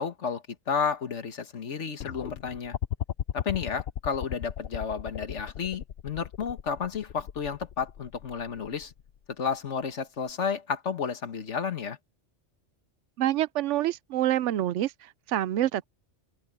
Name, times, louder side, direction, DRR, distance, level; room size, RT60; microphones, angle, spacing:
voice 1, 0.0-2.8 3.3-8.9 9.4-12.0, left 6 dB, 80° left, 1.7 m, -32 dB
sound 1, 2.0-9.2 10.3-10.4, left 10 dB, 60° left, 0.9 m, -36 dB
voice 2, 13.2-15.9, right 13 dB, 85° right, 0.9 m, -27 dB
open air
omnidirectional pair, 1.2 m